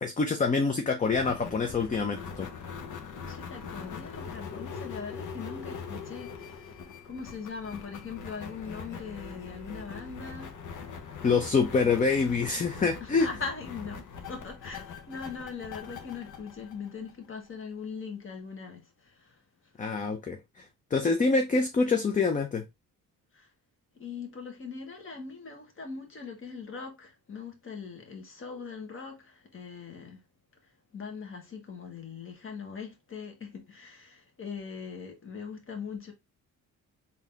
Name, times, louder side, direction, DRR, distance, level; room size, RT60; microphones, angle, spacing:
voice 1, 0.0-2.5 11.2-13.3 19.8-20.6 20.9-22.6, left 4 dB, 25° left, 0.6 m, -26 dB
sound 1, 1.0-17.5, left 5 dB, 65° left, 0.9 m, -42 dB
voice 2, 3.1-10.5 10.9-11.3 13.0-19.4 23.3-23.5 23.9-30.2 30.6-36.1, left 5 dB, 40° left, 1.4 m, -41 dB
3.9 x 2.8 x 3.5 m
cardioid pair, 115°, 33 cm